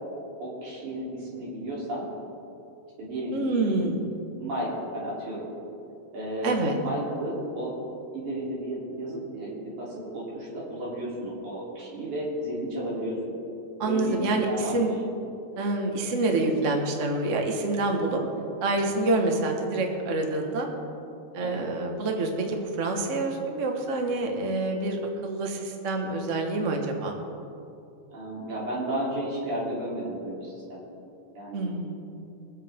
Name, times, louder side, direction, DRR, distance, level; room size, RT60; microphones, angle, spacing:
voice 1, 0.4-2.1 3.0-3.9 4.3-5.5 6.1-7.7 8.1-13.2 13.8-14.2 14.5-14.9 18.1-18.3 21.4-21.7 28.1-30.8 31.3-31.7, right 1 dB, 75° right, -6 dB, 4.6 m, -33 dB
voice 2, 3.3-4.0 6.4-6.8 13.8-14.9 15.6-18.2 18.6-20.7 21.3-27.1 31.5-32.0, right 2 dB, 55° right, 2 dB, 0.8 m, -27 dB
23.5 x 8.1 x 3.5 m, 2.8 s
omnidirectional pair, 3.5 m